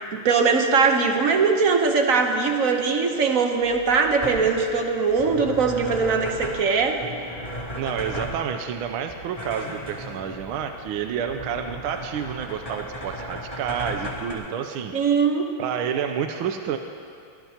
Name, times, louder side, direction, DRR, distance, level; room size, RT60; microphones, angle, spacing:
voice 1, 0.0-7.0 14.9-15.5, right 5 dB, 50° right, 4 dB, 1.1 m, -21 dB
sound 1, 3.6-14.3, equal, 15° left, 2.7 m, -36 dB
voice 2, 7.8-14.9 15.6-16.8, right 8 dB, 75° right, 6 dB, 1.5 m, -29 dB
24.0 x 19.5 x 2.9 m, 2.4 s
omnidirectional pair, 2.4 m